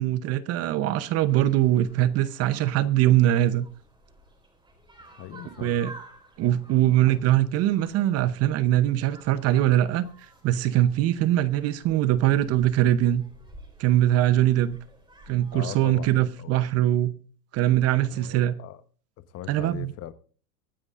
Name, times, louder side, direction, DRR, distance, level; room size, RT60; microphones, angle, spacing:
voice 1, 0.0-3.7 5.6-5.9 6.4-10.1 10.4-13.2 13.8-14.8 15.3-17.1 17.5-18.5 19.5-19.9, right 13 dB, 30° right, 0.7 m, -22 dB
sound 1, 1.3-16.4, right 1 dB, 10° right, 4.5 m, -51 dB
voice 2, 5.2-5.8 15.5-16.6 18.1-18.8 19.2-20.1, left 12 dB, 30° left, 1.1 m, -40 dB
24.0 x 9.5 x 2.5 m
hypercardioid pair, 125°, 46 cm